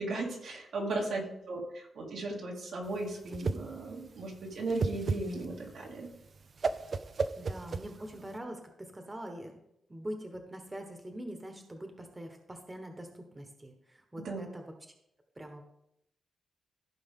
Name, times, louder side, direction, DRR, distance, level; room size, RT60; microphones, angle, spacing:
voice 1, 0.0-6.1 14.2-14.5, right 2 dB, 80° right, -2 dB, 2.6 m, -36 dB
voice 2, 1.0-1.6 7.4-9.6 9.9-14.7 15.4-15.6, right 1 dB, 20° right, 4 dB, 1.2 m, -44 dB
Whoosh swoosh swish, 2.9-8.4, right 4 dB, 45° right, 0.5 m, -35 dB
15.0 x 5.1 x 3.7 m, 0.79 s
cardioid pair, 110°, 0 cm